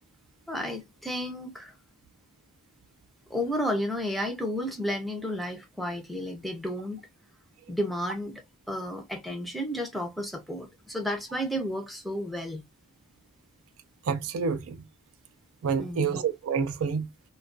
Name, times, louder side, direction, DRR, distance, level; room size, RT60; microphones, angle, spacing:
voice 1, 0.5-1.7 3.3-7.1 7.7-8.4 8.7-12.6 15.8-16.2, equal, ahead, 0.5 m, -32 dB
voice 2, 14.1-14.8 15.6-17.1, right 6 dB, 70° right, 0.4 m, -28 dB
2.2 x 2.2 x 2.4 m
head